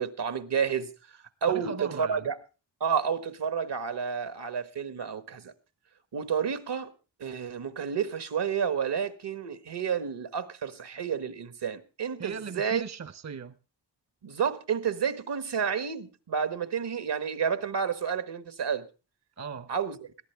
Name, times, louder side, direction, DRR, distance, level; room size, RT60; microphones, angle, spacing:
voice 1, 0.0-2.4 2.8-5.5 6.1-6.9 7.2-12.8 14.2-18.8 19.7-20.0, right 7 dB, 70° right, 1.5 m, -30 dB
voice 2, 1.5-2.3 12.2-13.6 19.4-19.7, right 6 dB, 40° right, 0.7 m, -38 dB
21.0 x 14.0 x 3.4 m
wide cardioid pair, 80°, 43 cm